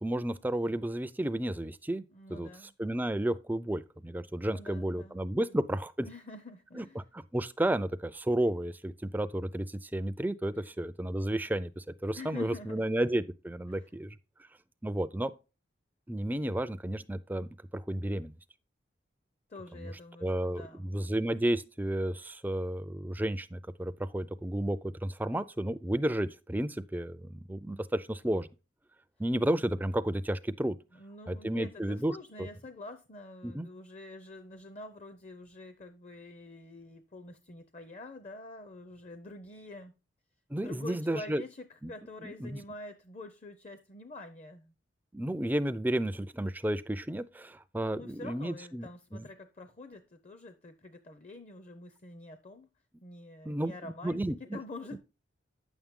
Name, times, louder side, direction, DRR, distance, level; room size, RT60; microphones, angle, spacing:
voice 1, 0.0-2.0 2.3-2.5 2.8-6.1 6.7-6.8 7.3-14.2 14.8-15.3 16.1-18.3 19.8-19.9 20.2-28.5 29.2-30.8 31.3-32.1 32.4-32.5 33.4-33.7 40.5-41.4 41.8-41.9 42.2-42.6 45.1-49.2 53.5-54.6 54.9-55.0, right 1 dB, 10° right, 0.4 m, -32 dB
voice 2, 2.1-2.8 4.4-5.6 6.1-7.0 10.5-10.7 12.1-12.9 13.7-13.9 19.5-21.0 30.9-39.9 40.6-44.7 47.9-52.7 53.0-55.0, left 2 dB, 35° left, 0.6 m, -47 dB
9.4 x 7.2 x 3.6 m
head